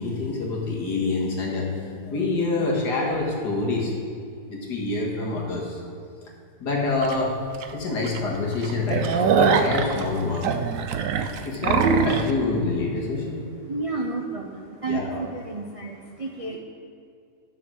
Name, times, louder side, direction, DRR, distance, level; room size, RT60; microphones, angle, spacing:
voice 1, 0.0-4.0 4.5-5.8 6.6-7.4 7.7-10.5 11.4-13.4 14.9-15.2, left 3 dB, 85° left, -2 dB, 2.3 m, -26 dB
sound 1, 7.0-7.2 7.6-7.7 8.0-8.2 8.5-12.3, right 7 dB, 65° right, 0.9 m, -23 dB
voice 2, 13.7-16.6, right 3 dB, 50° right, 0 dB, 0.4 m, -31 dB
11.0 x 6.6 x 6.3 m, 2.4 s
omnidirectional pair, 1.7 m